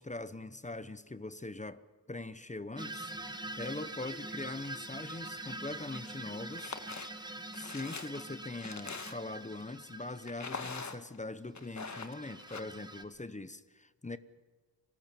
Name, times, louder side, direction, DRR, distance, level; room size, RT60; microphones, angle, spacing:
voice 1, 0.0-1.8 2.1-3.1 3.6-6.7 7.5-14.2, left 2 dB, 15° left, 0.9 m, -42 dB
sound 1, 2.8-10.6 11.7-13.0, right 1 dB, 10° right, 1.5 m, -44 dB
sound 2, 6.5-7.1 7.5-9.4 10.3-11.2 11.6-12.6, left 4 dB, 40° left, 1.7 m, -43 dB
25.5 x 19.0 x 7.1 m
wide cardioid pair, 145°, 42 cm